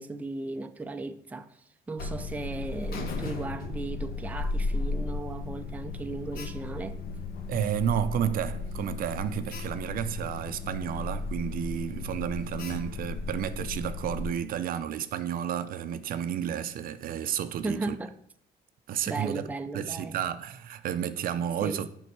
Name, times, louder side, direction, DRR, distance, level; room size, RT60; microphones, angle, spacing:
voice 1, 0.0-1.5 1.9-7.0 17.6-18.1 19.1-20.1 21.6-21.8, right 2 dB, 10° right, 0.4 m, -36 dB
Alarm, 2.0-14.3, left 3 dB, 60° left, 1.2 m, -35 dB
voice 2, 7.5-17.9 18.9-19.4 19.7-21.9, right 9 dB, 60° right, 0.5 m, -31 dB
7.1 x 5.3 x 4.6 m
cardioid pair, 110°, 17 cm